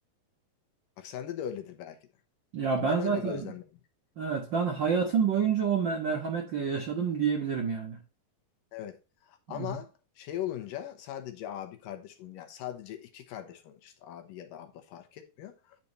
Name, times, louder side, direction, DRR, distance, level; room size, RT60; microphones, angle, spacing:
voice 1, 1.0-2.0 2.8-3.6 8.7-15.8, left 11 dB, 80° left, 2.7 m, -40 dB
voice 2, 2.5-3.5 4.2-8.0 9.5-9.8, right 6 dB, 70° right, 1.0 m, -28 dB
10.5 x 4.2 x 4.1 m
omnidirectional pair, 4.0 m